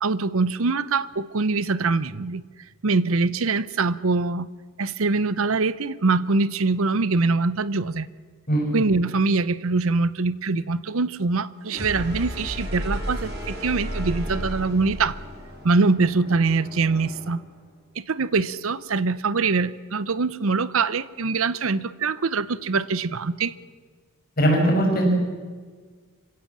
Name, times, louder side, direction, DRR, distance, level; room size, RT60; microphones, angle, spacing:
voice 1, 0.0-2.4 2.8-4.5 4.8-8.1 8.7-15.2 15.6-17.4 18.0-23.5, right 3 dB, 65° right, 17 dB, 0.7 m, -23 dB
voice 2, 8.5-8.8 24.4-25.1, right 1 dB, 45° left, 0 dB, 6.0 m, -20 dB
sound 1, 11.6-17.5, equal, 50° right, 4.4 m, -33 dB
26.5 x 16.5 x 7.4 m, 1.5 s
head